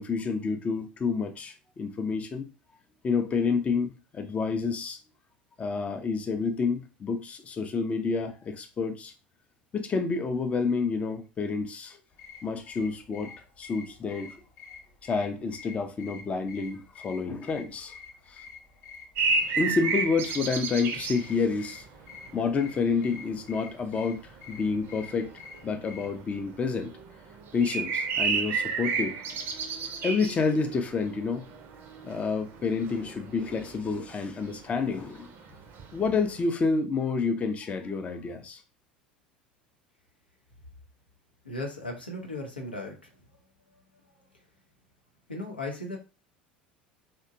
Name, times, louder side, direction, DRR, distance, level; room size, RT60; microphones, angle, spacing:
voice 1, 0.0-2.5 3.0-5.0 5.6-9.1 9.7-12.0 12.4-14.4 15.0-17.9 18.3-18.4 19.6-21.8 22.3-25.3 25.6-26.9 27.5-29.2 30.0-31.4 32.0-35.3 35.9-38.6, left 4 dB, 25° left, 0.4 m, -29 dB
sound 1, 12.1-26.2, left 5 dB, 45° left, 0.9 m, -49 dB
sound 2, 19.2-22.7 23.0-36.4, right 4 dB, 45° right, 0.5 m, -32 dB
voice 2, 41.4-43.0 45.3-46.0, left 2 dB, 90° left, 0.6 m, -36 dB
2.7 x 2.2 x 2.5 m
figure-of-eight pair, 75°, 5 cm